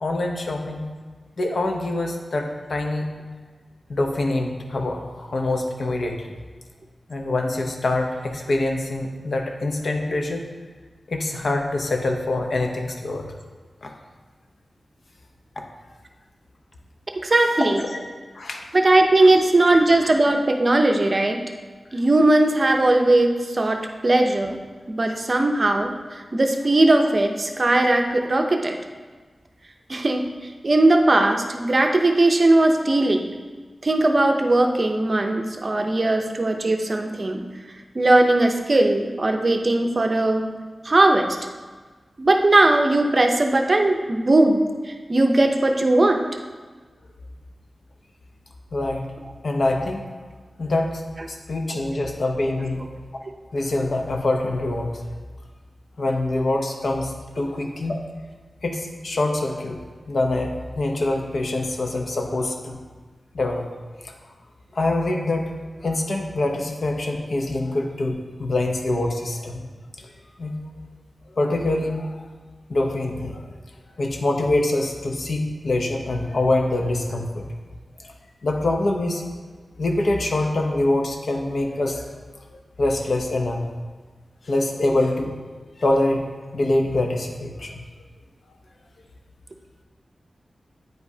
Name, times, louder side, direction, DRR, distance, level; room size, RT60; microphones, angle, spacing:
voice 1, 0.0-0.9 1.4-3.1 3.9-6.3 7.1-10.4 11.1-13.3 13.8-13.9 17.6-18.0 18.3-18.6 19.2-19.4 19.6-20.1 25.1-25.2 48.7-49.0 49.4-50.0 50.6-51.0 51.3-53.0 53.5-55.0 56.0-58.0 58.6-59.8 60.1-62.8 63.3-63.7 64.0-64.1 64.7-65.5 65.8-69.6 70.0-70.1 70.4-70.6 71.3-72.2 72.7-73.4 74.0-77.5 78.4-79.2 79.8-82.1 82.5-83.7 84.5-85.4 85.8-86.3 86.5-87.8, left 2 dB, 65° left, 2 dB, 0.7 m, -25 dB
voice 2, 17.2-17.8 18.7-21.4 21.9-24.6 24.9-25.9 26.3-28.8 29.9-30.2 30.6-33.3 33.8-37.4 37.9-40.5 40.8-41.4 42.2-44.6 45.1-46.2, right 2 dB, 40° right, 4 dB, 0.6 m, -18 dB
9.2 x 5.0 x 2.7 m, 1.4 s
wide cardioid pair, 115°, 0 cm